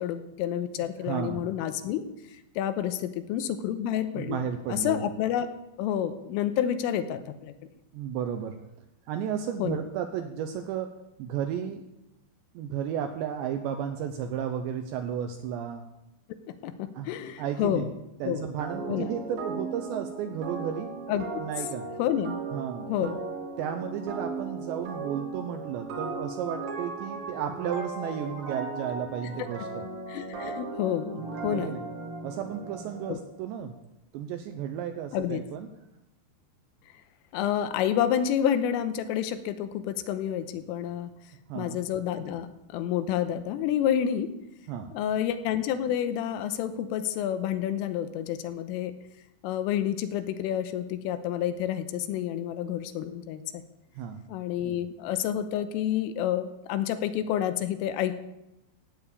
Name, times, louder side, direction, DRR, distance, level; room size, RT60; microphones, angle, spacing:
voice 1, 0.0-2.1 2.6-4.4 4.7-5.5 5.8-7.5 9.6-9.8 16.5-17.9 18.2-18.5 18.9-19.1 21.1-21.3 22.0-22.4 22.9-23.2 30.1-31.7 33.1-33.2 35.1-35.4 37.3-41.1 41.6-44.3 44.9-48.9 49.4-53.6 54.3-58.2, left 10 dB, 85° left, 10 dB, 3.3 m, -29 dB
voice 2, 1.0-1.5 4.1-5.0 7.9-8.6 9.1-11.9 12.5-15.9 16.9-17.1 17.4-17.9 18.2-21.0 21.4-21.9 22.5-23.2 23.6-29.9 31.5-31.8 32.2-33.8 34.1-35.7 41.5-41.8 44.7-44.9 54.0-54.2, right 8 dB, 80° right, 7 dB, 2.6 m, -33 dB
sound 1, 18.6-33.2, right 4 dB, 60° right, 2.5 m, -37 dB
16.0 x 7.0 x 8.5 m, 0.90 s
omnidirectional pair, 5.9 m